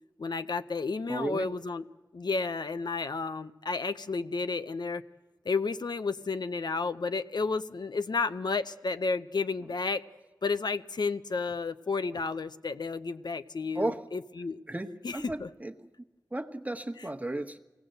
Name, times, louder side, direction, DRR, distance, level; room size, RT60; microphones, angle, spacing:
voice 1, 0.2-1.8 2.1-5.0 5.4-10.0 10.4-14.6 15.0-15.5, left 4 dB, 85° left, 11 dB, 0.8 m, -32 dB
voice 2, 1.1-1.5 9.6-9.7 13.7-14.1 14.7-15.9 16.3-17.6, right 1 dB, 20° right, 6 dB, 1.2 m, -34 dB
24.0 x 17.5 x 7.9 m, 1.1 s
wide cardioid pair, 70°, 7 cm